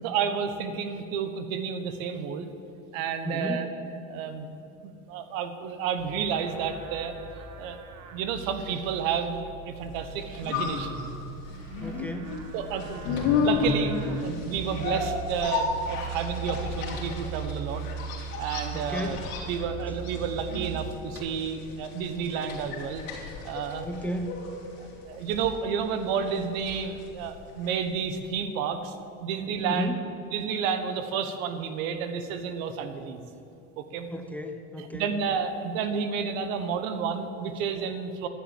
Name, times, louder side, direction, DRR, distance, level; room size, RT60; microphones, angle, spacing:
voice 1, 0.0-2.5 2.9-3.7 4.1-4.5 4.8-7.2 7.6-7.8 8.1-11.0 11.8-12.1 12.5-17.8 18.4-19.2 19.5-23.0 23.4-23.9 24.8-29.9 30.3-33.3 33.8-34.1 34.8-38.3, right 6 dB, 80° right, 9 dB, 1.3 m, -31 dB
voice 2, 3.2-3.6 11.8-12.4 18.7-19.2 23.9-24.4 29.6-30.0 34.1-35.1, equal, 5° left, 6 dB, 0.8 m, -33 dB
Livestock farm animals working animals, 6.0-20.9, right 8 dB, 45° right, 1.3 m, -40 dB
sound 1, 9.9-28.0 28.2-28.3, left 5 dB, 80° left, 3.7 m, -33 dB
12.0 x 7.5 x 8.9 m, 2.8 s
supercardioid pair, 120°, 40 cm